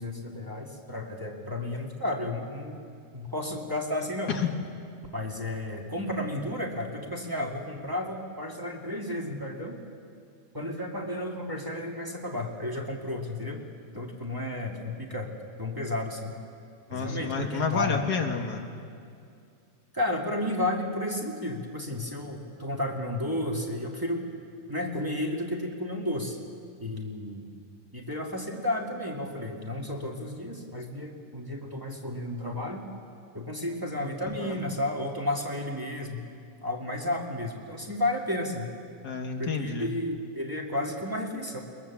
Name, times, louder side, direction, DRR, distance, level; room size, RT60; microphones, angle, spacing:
voice 1, 0.0-2.8 3.1-4.3 5.1-9.8 10.5-13.6 13.9-15.3 15.6-16.4 16.9-18.0 19.9-24.2 24.7-26.4 26.8-27.5 27.9-32.9 33.3-36.2 36.6-38.7 39.4-41.6, left 1 dB, 10° right, 0 dB, 2.0 m, -32 dB
voice 2, 16.9-18.7 34.4-34.6 39.0-39.9, left 5 dB, 65° left, 4 dB, 2.0 m, -30 dB
23.0 x 21.0 x 7.3 m, 2.4 s
omnidirectional pair, 1.8 m